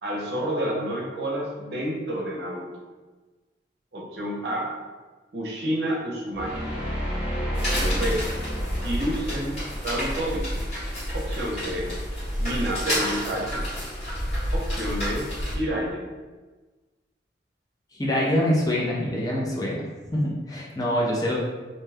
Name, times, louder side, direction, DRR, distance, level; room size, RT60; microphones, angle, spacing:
voice 1, 0.0-2.7 3.9-4.7 5.3-6.7 7.5-8.3 8.8-9.6 9.8-10.5 11.1-11.9 12.4-13.6 14.5-15.3 15.5-16.0, equal, 65° right, -2 dB, 0.6 m, -29 dB
sound 1, 6.3-11.4, equal, 5° right, 0.9 m, -31 dB
sound 2, 7.5-15.5, equal, 35° left, 1.2 m, -29 dB
voice 2, 18.0-19.8 20.1-21.3, equal, 20° left, -4 dB, 0.4 m, -25 dB
2.6 x 2.2 x 3.3 m, 1.3 s
head